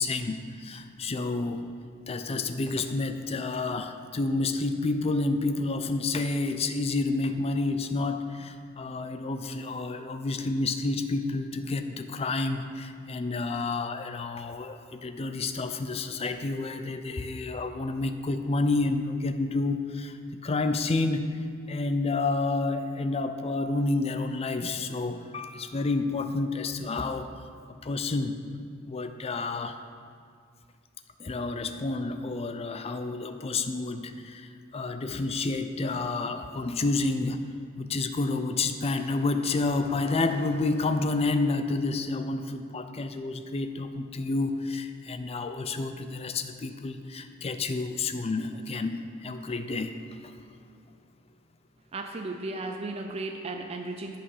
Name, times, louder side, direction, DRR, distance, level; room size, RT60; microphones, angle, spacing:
voice 1, 0.0-1.6 2.1-20.2 20.4-27.3 27.7-28.4 28.9-29.8 31.2-37.4 37.8-50.3, left 3 dB, 30° left, 8 dB, 0.5 m, -29 dB
voice 2, 51.9-54.2, right 2 dB, 30° right, 4 dB, 0.5 m, -35 dB
9.7 x 5.6 x 5.5 m, 2.1 s
head